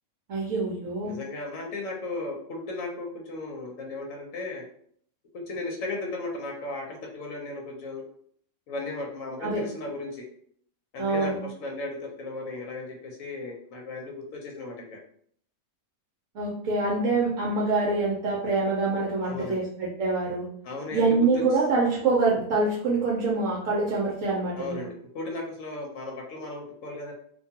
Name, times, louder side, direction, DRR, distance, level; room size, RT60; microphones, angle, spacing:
voice 1, 0.3-1.2 9.4-9.6 11.0-11.4 16.3-20.5 20.9-24.8, right 3 dB, 70° right, -4 dB, 0.9 m, -25 dB
voice 2, 1.0-4.6 5.3-8.0 8.7-10.2 10.9-15.0 19.2-19.6 20.6-21.4 24.6-27.1, left 2 dB, 70° left, 0 dB, 1.0 m, -36 dB
2.5 x 2.3 x 2.7 m, 0.62 s
omnidirectional pair, 1.5 m